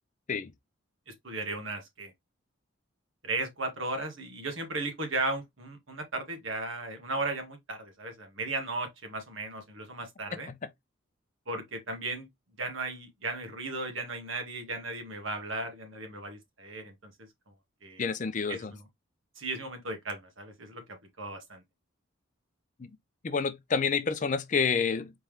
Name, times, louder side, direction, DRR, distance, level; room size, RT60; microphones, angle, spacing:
voice 1, 1.1-2.1 3.2-10.5 11.5-12.3 12.6-17.1 17.8-18.1 18.5-18.9 19.3-21.6, right 2 dB, 70° right, 1.7 m, -36 dB
voice 2, 18.0-18.7 22.8-22.9 23.2-25.1, left 5 dB, 35° left, 0.4 m, -28 dB
4.3 x 3.6 x 3.2 m
head